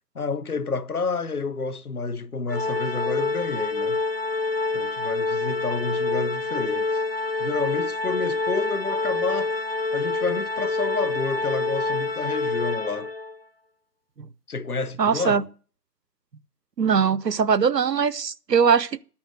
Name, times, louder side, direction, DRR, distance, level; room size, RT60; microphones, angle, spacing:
voice 1, 0.1-4.0 4.7-7.0 7.4-9.5 9.9-13.1 14.5-15.5, left 4 dB, 60° left, 0.9 m, -29 dB
Organ, 2.5-13.4, left 3 dB, 40° left, 0.6 m, -27 dB
voice 2, 15.0-15.4 16.8-19.0, right 6 dB, 75° right, 0.8 m, -21 dB
10.5 x 7.2 x 7.9 m
figure-of-eight pair, 170°, 49 cm